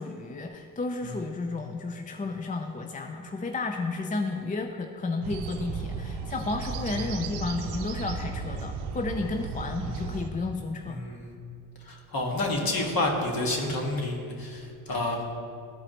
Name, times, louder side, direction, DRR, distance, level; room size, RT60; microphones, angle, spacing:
voice 1, 0.0-11.0, left 3 dB, 20° left, 5 dB, 0.4 m, -32 dB
sound 1, 5.2-10.3, right 5 dB, 80° right, 0.7 m, -35 dB
voice 2, 9.8-10.2 10.9-11.3 11.8-15.3, left 2 dB, 45° left, 0 dB, 1.6 m, -30 dB
12.5 x 4.8 x 2.9 m, 2.3 s
supercardioid pair, 55°, 47 cm